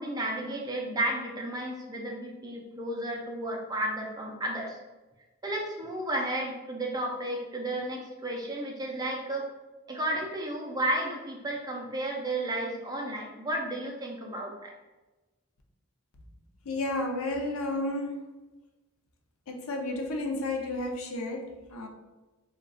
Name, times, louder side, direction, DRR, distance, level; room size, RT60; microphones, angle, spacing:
voice 1, 0.0-4.8 5.4-9.5 9.9-14.7, right 1 dB, 20° right, 0 dB, 0.3 m, -33 dB
voice 2, 16.6-18.3 19.5-21.9, left 2 dB, 80° left, 2 dB, 0.5 m, -32 dB
2.3 x 2.1 x 3.6 m, 1.1 s
head